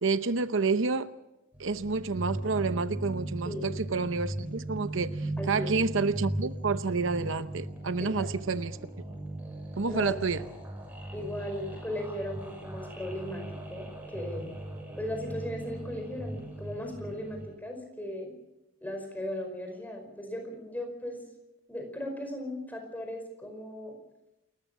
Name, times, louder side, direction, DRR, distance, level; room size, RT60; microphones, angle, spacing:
voice 1, 0.0-1.1 1.6-8.8 9.8-10.4, right 4 dB, 75° right, 12 dB, 0.8 m, -29 dB
Deep gated vocal with delay, 1.5-17.5, right 1 dB, 10° right, 6.9 m, -38 dB
voice 2, 5.4-5.7 8.0-8.3 9.8-10.5 11.1-13.9 14.1-14.5 15.0-18.3 18.8-21.2 21.7-23.9, left 1 dB, 10° left, 4 dB, 5.1 m, -37 dB
28.5 x 14.5 x 7.2 m, 0.95 s
head